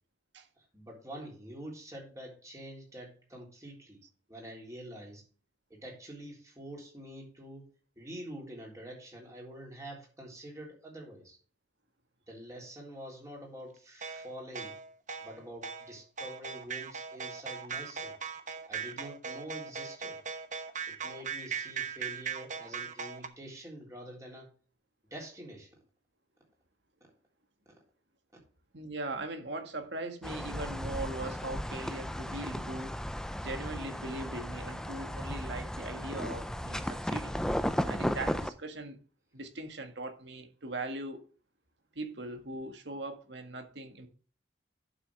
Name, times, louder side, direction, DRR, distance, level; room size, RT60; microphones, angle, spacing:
voice 1, 0.7-4.0 4.3-5.2 5.7-7.7 8.0-11.4 12.3-14.8 15.2-18.1 18.7-20.2 20.9-24.5 25.1-25.8, right 1 dB, 15° right, 3.6 m, -46 dB
sound 1, 14.0-23.3, right 6 dB, 40° right, 0.9 m, -39 dB
voice 2, 28.7-32.9 33.4-37.4 37.8-39.0 39.3-41.2 42.0-44.1, right 2 dB, 70° right, 1.8 m, -40 dB
sound 2, 30.2-38.5, equal, 5° left, 0.4 m, -35 dB
11.5 x 6.3 x 3.4 m
head